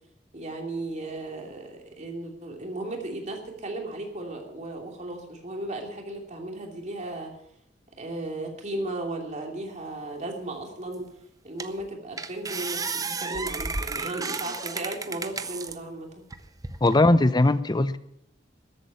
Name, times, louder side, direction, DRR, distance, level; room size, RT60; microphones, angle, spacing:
voice 1, 0.3-7.3 8.0-11.1 11.4-12.8 13.2-16.2, right 2 dB, 40° right, 2.9 m, -35 dB
sound 1, 10.9-11.0 11.6-11.8 12.2-15.8 16.3-17.0, right 4 dB, 20° right, 0.7 m, -33 dB
voice 2, 16.8-18.0, left 2 dB, 25° left, 0.6 m, -19 dB
13.5 x 8.4 x 8.4 m
head